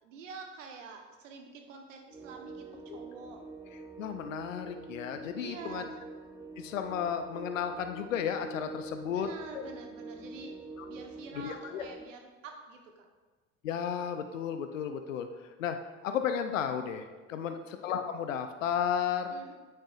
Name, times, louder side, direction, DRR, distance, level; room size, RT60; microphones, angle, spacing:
voice 1, 0.0-3.4 5.4-6.0 9.1-10.6 10.9-13.1 17.3-17.6 19.3-19.5, right 5 dB, 75° right, 4 dB, 1.1 m, -47 dB
sound 1, 2.1-12.1, right 3 dB, 10° right, 0.5 m, -46 dB
voice 2, 4.0-5.8 6.6-9.3 9.5-9.6 11.4-11.8 13.6-15.3 15.6-15.8 16.0-19.3, left 8 dB, 85° left, 8 dB, 0.6 m, -33 dB
9.1 x 8.8 x 2.5 m, 1.3 s
figure-of-eight pair, 65°, 38 cm